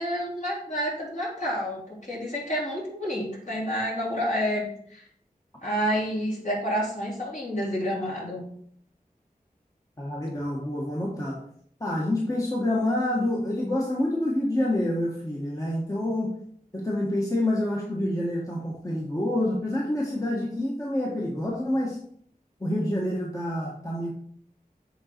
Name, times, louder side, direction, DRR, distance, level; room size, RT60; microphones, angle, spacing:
voice 1, 0.0-5.0 5.6-8.4, equal, 55° left, -5 dB, 3.2 m, -29 dB
voice 2, 10.0-11.4 11.8-16.3 16.7-22.0 22.6-24.1, left 1 dB, 20° left, -3 dB, 1.4 m, -27 dB
7.7 x 3.9 x 4.4 m, 0.62 s
wide cardioid pair, 50°, 15 cm